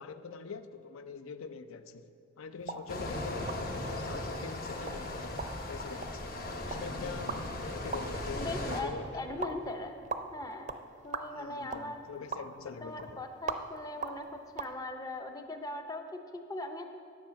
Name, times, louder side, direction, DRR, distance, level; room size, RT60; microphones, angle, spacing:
voice 1, 0.0-2.1 2.4-6.4 6.6-9.5 11.3-13.2, left 5 dB, 80° left, 11 dB, 0.5 m, -44 dB
sound 1, 2.6-14.7, right 4 dB, 35° right, 0.4 m, -43 dB
sound 2, 2.9-8.8, left 1 dB, 45° left, 1.0 m, -37 dB
voice 2, 8.4-10.0 10.3-10.7 11.0-12.0 12.8-16.8, left 2 dB, 15° left, 5 dB, 0.6 m, -40 dB
10.5 x 7.6 x 5.7 m, 2.6 s
head